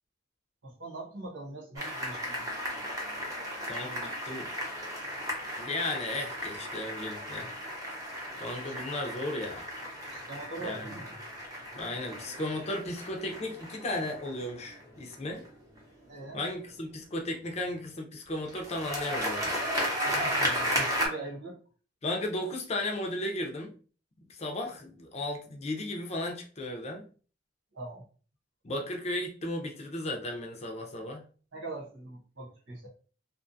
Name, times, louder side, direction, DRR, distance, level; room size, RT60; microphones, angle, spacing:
voice 1, 0.6-2.5 8.6-8.7 10.1-11.2 16.1-16.4 20.0-21.6 27.7-28.1 31.5-32.9, right 2 dB, 75° right, -3 dB, 1.0 m, -42 dB
sound 1, 1.8-15.8 18.5-21.1, equal, 20° right, 0.8 m, -35 dB
voice 2, 3.7-4.5 5.6-7.5 8.4-9.7 10.6-10.9 11.7-15.4 16.3-19.6 22.0-23.7 24.3-27.1 28.6-31.2, left 1 dB, 35° left, 2 dB, 0.5 m, -35 dB
2.5 x 2.3 x 2.6 m, 0.40 s
head